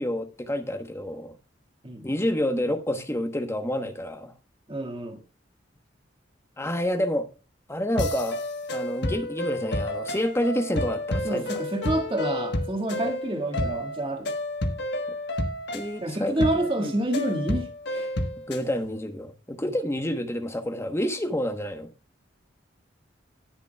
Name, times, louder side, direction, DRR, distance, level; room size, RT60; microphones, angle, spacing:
voice 1, 0.0-1.4 2.0-4.3 6.6-7.3 7.7-8.4 8.7-11.5 13.0-13.2 15.7-16.9 18.5-21.9, left 1 dB, 15° left, 1.1 m, -28 dB
voice 2, 4.7-5.2 11.2-14.3 16.0-18.1, right 1 dB, 30° right, 1.9 m, -28 dB
sound 1, 8.0-18.7, left 1 dB, 65° left, 1.3 m, -30 dB
18.5 x 6.8 x 2.3 m
head